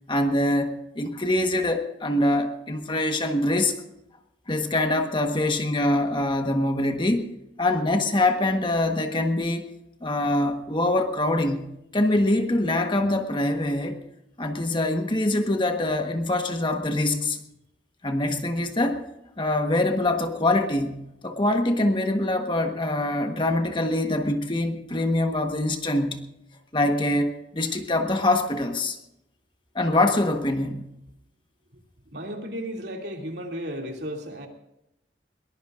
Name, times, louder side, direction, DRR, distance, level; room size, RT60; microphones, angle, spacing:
voice 1, 0.1-3.7 4.5-7.2 7.6-9.6 10.0-14.0 14.4-17.4 18.0-19.0 19.4-26.3 26.7-29.0 29.7-30.9, left 1 dB, 25° left, 5 dB, 1.3 m, -24 dB
voice 2, 32.1-34.5, equal, 70° right, 1 dB, 2.7 m, -34 dB
21.5 x 20.0 x 2.6 m, 0.85 s
head